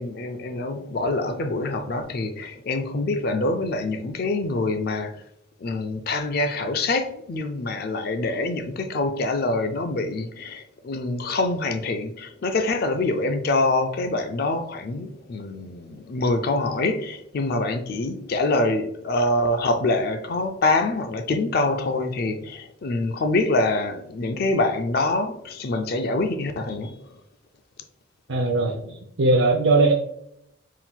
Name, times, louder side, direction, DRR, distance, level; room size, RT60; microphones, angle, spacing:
voice 1, 0.0-5.2 5.6-27.2, left 2 dB, 50° left, 0.4 m, -25 dB
voice 2, 28.3-29.9, right 2 dB, 85° right, 0.6 m, -20 dB
4.2 x 3.7 x 2.3 m
head